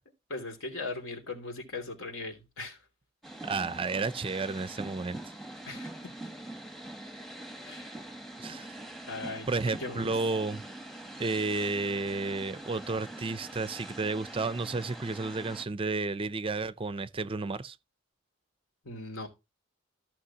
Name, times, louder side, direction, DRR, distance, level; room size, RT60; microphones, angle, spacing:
voice 1, 0.3-2.8 5.7-6.1 7.6-8.0 9.1-9.5 9.8-10.1 18.8-19.3, left 3 dB, 80° left, 2.8 m, -39 dB
sound 1, 3.2-15.6, right 1 dB, ahead, 1.0 m, -44 dB
voice 2, 3.4-5.2 8.4-8.8 9.5-10.6 11.2-17.8, right 3 dB, 25° right, 0.5 m, -32 dB
14.5 x 5.9 x 2.8 m
head